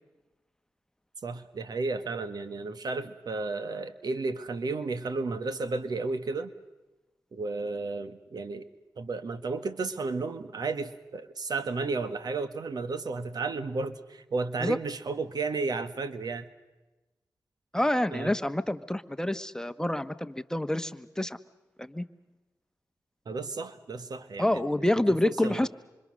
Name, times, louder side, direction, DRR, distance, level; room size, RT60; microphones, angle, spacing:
voice 1, 1.2-6.5 7.3-8.7 9.0-16.5 18.1-18.3 23.2-24.6 24.9-25.7, right 3 dB, 70° right, 11 dB, 1.6 m, -33 dB
voice 2, 17.7-21.4 21.8-22.1 24.4-25.7, left 1 dB, 10° left, 11 dB, 1.2 m, -27 dB
26.5 x 25.5 x 6.5 m, 1.1 s
cardioid pair, 50°, 7 cm